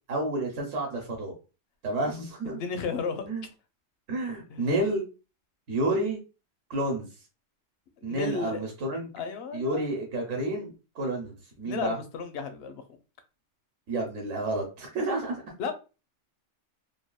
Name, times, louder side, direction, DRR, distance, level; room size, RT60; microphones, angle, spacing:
voice 1, 0.1-1.4 1.8-2.6 3.3-3.5 4.1-5.1 5.7-6.2 6.7-7.1 8.0-9.1 9.5-12.0 13.9-15.4, right 1 dB, 65° right, 1.1 m, -30 dB
voice 2, 2.5-3.3 4.5-4.7 8.0-8.6 9.1-9.8 11.6-12.8 15.6-15.7, left 5 dB, 60° left, 0.7 m, -33 dB
3.4 x 2.3 x 2.2 m
omnidirectional pair, 1.4 m